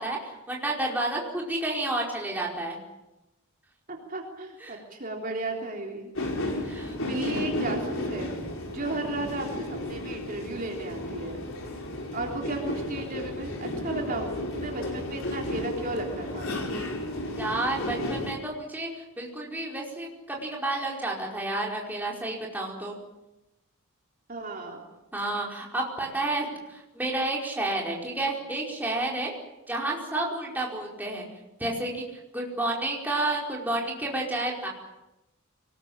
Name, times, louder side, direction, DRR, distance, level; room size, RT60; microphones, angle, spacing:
voice 1, 0.0-2.8 4.6-4.8 6.6-7.0 17.4-22.9 25.1-29.3 29.7-31.2 31.6-32.0 32.3-34.7, right 2 dB, 10° right, -2 dB, 4.9 m, -30 dB
voice 2, 3.9-6.1 7.0-8.3 8.7-11.4 12.1-16.5 24.3-24.9, right 2 dB, 40° right, 1 dB, 3.5 m, -34 dB
sound 1, 6.1-18.3, left 1 dB, 65° left, 5.1 m, -33 dB
24.5 x 20.0 x 8.8 m, 0.96 s
head